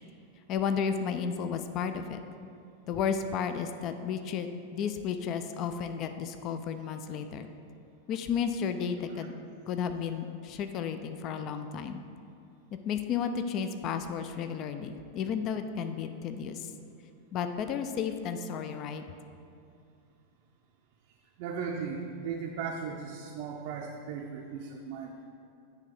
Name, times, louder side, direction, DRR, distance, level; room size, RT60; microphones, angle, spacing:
voice 1, 0.5-2.2 2.9-7.5 8.1-9.4 9.7-12.0 12.9-16.7 17.3-19.1, left 7 dB, 35° left, 8 dB, 0.3 m, -33 dB
voice 2, 21.1-25.3, right 6 dB, 45° right, 0 dB, 0.5 m, -37 dB
9.8 x 3.3 x 3.9 m, 2.5 s
figure-of-eight pair, 90°, 0 cm